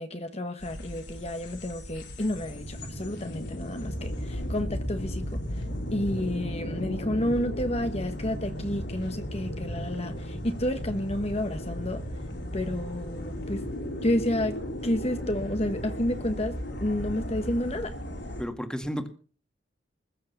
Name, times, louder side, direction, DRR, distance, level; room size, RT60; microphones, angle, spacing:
voice 1, 0.0-5.4 5.9-12.0 12.5-13.6 14.0-14.5 14.8-16.5 16.8-17.9, left 1 dB, 35° left, 7 dB, 1.4 m, -30 dB
sound 1, 0.6-18.4, equal, 75° left, 5.4 m, -35 dB
voice 2, 18.4-19.1, equal, 5° left, 7 dB, 2.1 m, -32 dB
21.5 x 7.6 x 7.2 m, 0.39 s
head